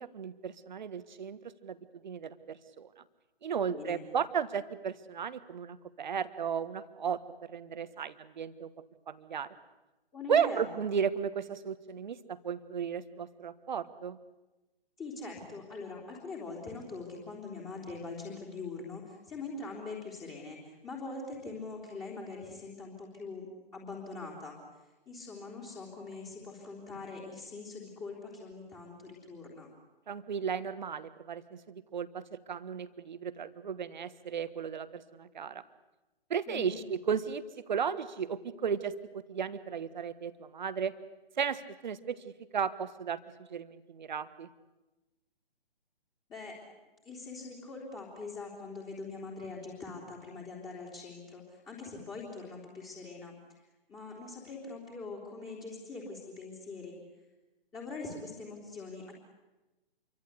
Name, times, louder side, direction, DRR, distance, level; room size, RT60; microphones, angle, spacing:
voice 1, 0.0-1.8 2.0-2.9 3.4-8.7 9.1-9.5 10.3-14.2 30.1-35.6 36.3-40.9 41.4-43.2 43.5-44.5, right 7 dB, 50° right, 13 dB, 1.5 m, -35 dB
voice 2, 3.6-4.0 10.1-10.7 15.0-29.7 36.5-36.8 46.3-46.6 47.1-57.0 57.7-59.1, left 3 dB, 10° left, -4 dB, 3.6 m, -43 dB
28.0 x 24.0 x 8.2 m, 1.1 s
figure-of-eight pair, 130°, 30 cm